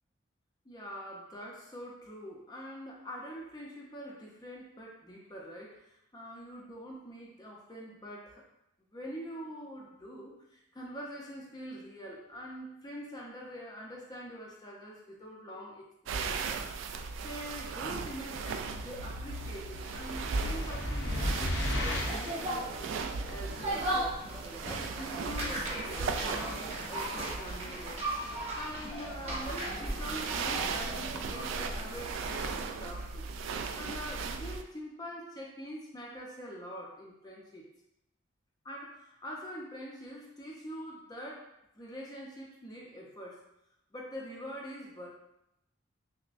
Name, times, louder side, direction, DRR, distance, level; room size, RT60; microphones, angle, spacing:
voice 1, 0.6-8.4 8.9-16.6 16.9-24.0 24.6-28.0 28.5-33.3 33.8-37.7 38.6-41.5 41.7-43.4 43.9-45.1, equal, 20° left, -2 dB, 0.6 m, -44 dB
sound 1, 16.1-34.6, right 4 dB, 80° right, 0.3 m, -38 dB
sound 2, 19.8-22.4, left 1 dB, 60° left, 0.7 m, -33 dB
sound 3, 21.7-33.0, right 1 dB, 30° right, 0.9 m, -38 dB
6.1 x 2.1 x 2.5 m, 0.84 s
head